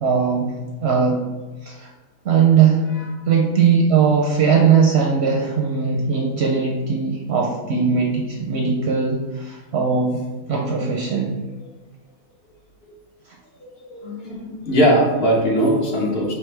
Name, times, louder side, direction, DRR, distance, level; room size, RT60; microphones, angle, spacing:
voice 1, 0.0-0.5 0.8-1.2 1.6-1.9 2.2-2.8 3.3-10.2 10.5-11.3, right 6 dB, 65° right, -1 dB, 0.7 m, -19 dB
voice 2, 13.9-16.3, equal, 50° left, -2 dB, 0.9 m, -19 dB
5.0 x 3.3 x 3.2 m, 1.2 s
omnidirectional pair, 1.5 m